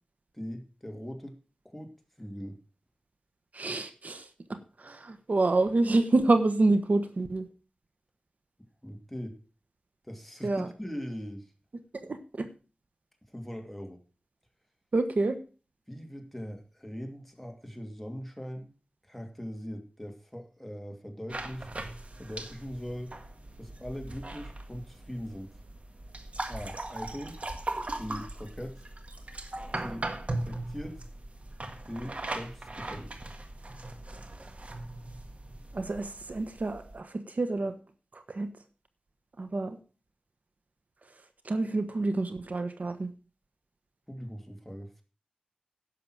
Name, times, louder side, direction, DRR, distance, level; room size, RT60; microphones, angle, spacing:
voice 1, 0.3-1.4 1.6-2.6 8.8-9.4 10.0-10.5 10.8-11.5 13.3-14.0 15.9-18.7 19.0-21.7 22.2-23.1 23.6-25.5 26.5-27.4 28.0-28.8 29.8-31.0 31.8-33.2 44.1-45.0, equal, 5° left, 3 dB, 2.6 m, -41 dB
voice 2, 3.5-7.5 10.4-10.7 12.0-12.5 14.9-15.4 35.7-37.7 38.1-38.5 39.4-39.8 41.4-43.1, right 2 dB, 75° right, 8 dB, 1.2 m, -28 dB
sound 1, 21.3-37.0, right 2 dB, 55° right, 1.5 m, -39 dB
11.0 x 6.7 x 6.1 m, 0.35 s
wide cardioid pair, 55°, 3 cm